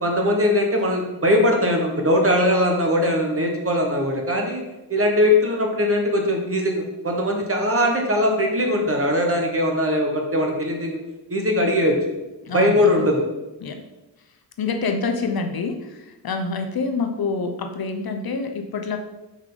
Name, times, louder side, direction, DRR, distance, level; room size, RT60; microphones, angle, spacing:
voice 1, 0.0-4.6 4.9-11.0 11.3-12.0 12.5-13.2, left 1 dB, 30° right, 1 dB, 1.1 m, -20 dB
voice 2, 12.5-13.1 13.6-13.8 14.6-19.0, left 4 dB, 55° left, 5 dB, 0.6 m, -27 dB
5.5 x 4.9 x 3.8 m, 1.0 s
wide cardioid pair, 120°, 44 cm